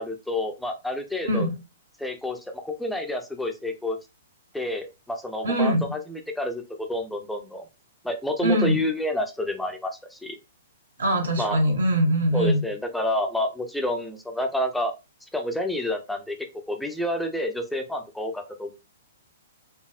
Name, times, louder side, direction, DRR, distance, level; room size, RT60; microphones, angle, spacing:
voice 1, 0.0-1.5 2.0-4.0 4.5-7.7 8.0-10.4 11.4-11.6 12.3-14.9 15.3-16.4 16.7-18.7, left 1 dB, 5° left, 4 dB, 0.5 m, -29 dB
voice 2, 5.4-5.9 8.4-8.8 11.0-12.6, equal, 80° right, 1 dB, 1.6 m, -22 dB
4.1 x 3.4 x 2.4 m, 0.26 s
hypercardioid pair, 120°, 0 cm